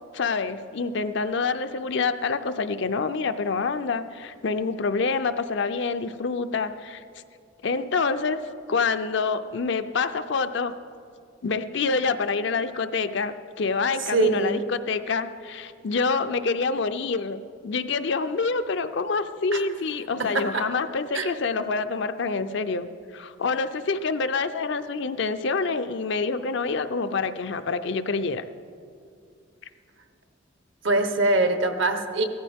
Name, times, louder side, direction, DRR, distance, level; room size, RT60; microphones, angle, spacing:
voice 1, 0.1-7.0 7.6-8.4 8.7-10.8 11.4-28.4, left 4 dB, 60° left, 10 dB, 0.5 m, -27 dB
voice 2, 14.1-14.6 19.5-19.7 20.2-20.7 21.1-21.3 30.8-32.2, right 2 dB, 65° right, 7 dB, 1.0 m, -23 dB
17.0 x 14.0 x 3.6 m, 2.3 s
head